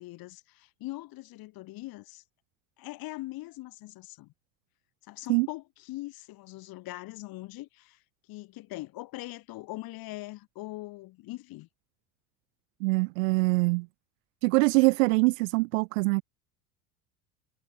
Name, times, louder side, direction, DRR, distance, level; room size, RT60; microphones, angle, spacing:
voice 1, 0.0-2.2 2.8-4.3 5.1-8.0 8.3-11.7, left 19 dB, 55° left, 5.8 m, -41 dB
voice 2, 12.8-13.9 14.4-16.2, right 27 dB, 65° right, 1.0 m, -24 dB
hypercardioid pair, 80°, 42 cm